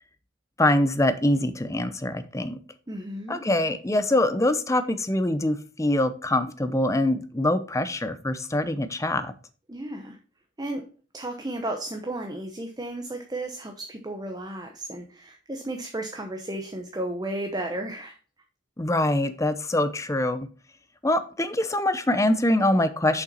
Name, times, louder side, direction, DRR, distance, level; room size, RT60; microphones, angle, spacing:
voice 1, 0.6-2.6 3.3-9.3 18.8-20.5 21.0-23.2, left 1 dB, 15° left, 11 dB, 0.7 m, -24 dB
voice 2, 2.9-3.4 9.7-10.2 10.6-10.9 11.1-18.2, right 1 dB, 20° right, 4 dB, 0.8 m, -33 dB
6.8 x 5.7 x 4.1 m, 0.38 s
head